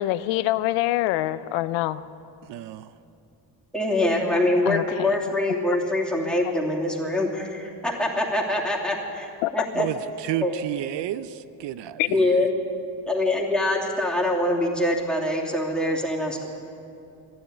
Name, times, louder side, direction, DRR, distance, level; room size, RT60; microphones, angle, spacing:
voice 1, 0.0-2.0 4.7-5.1 9.4-9.7 12.0-12.1, left 16 dB, 85° left, 15 dB, 0.5 m, -25 dB
voice 2, 2.4-2.9 9.7-12.5, right 13 dB, 70° right, 15 dB, 0.6 m, -32 dB
voice 3, 3.7-9.9 10.4-10.6 12.1-12.5 13.0-16.5, left 1 dB, ahead, -3 dB, 2.7 m, -24 dB
11.5 x 11.0 x 9.5 m, 2.7 s
supercardioid pair, 70°, 44 cm